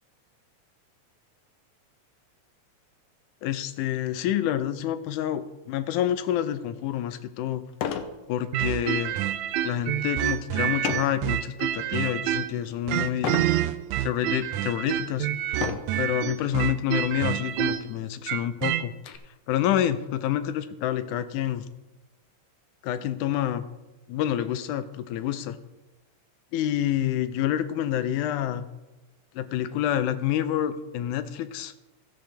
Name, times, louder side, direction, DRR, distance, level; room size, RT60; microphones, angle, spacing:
voice 1, 3.4-7.6 8.3-9.2 9.6-13.4 14.0-15.3 16.0-18.9 19.5-21.7 22.8-23.7 24.1-25.6 26.5-28.7 29.4-31.7, left 11 dB, 90° left, 12 dB, 2.2 m, -28 dB
sound 1, 6.8-6.9 7.7-8.2 8.6-8.9 10.8-11.2 11.8-12.2 13.2-13.6 14.3-14.4 15.5-16.0 17.0-17.2 17.5-17.6 18.0-19.2, left 8 dB, 70° left, 1.7 m, -32 dB
sound 2, 8.5-12.6 12.9-18.9, right 12 dB, 80° right, 1.8 m, -27 dB
15.5 x 8.1 x 3.4 m, 1.1 s
omnidirectional pair, 3.4 m